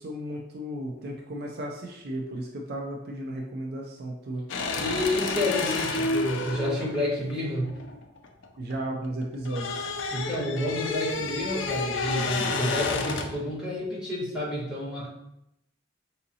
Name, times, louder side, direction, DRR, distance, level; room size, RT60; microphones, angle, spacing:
voice 1, 0.0-4.4 8.6-9.9, right 1 dB, 55° right, 0 dB, 0.4 m, -34 dB
sound 1, 4.5-8.7 9.0-13.4, left 3 dB, 65° left, 0.4 m, -30 dB
voice 2, 4.7-7.7 10.1-15.1, left 1 dB, 5° right, -9 dB, 1.2 m, -29 dB
3.7 x 2.8 x 2.7 m, 0.84 s
head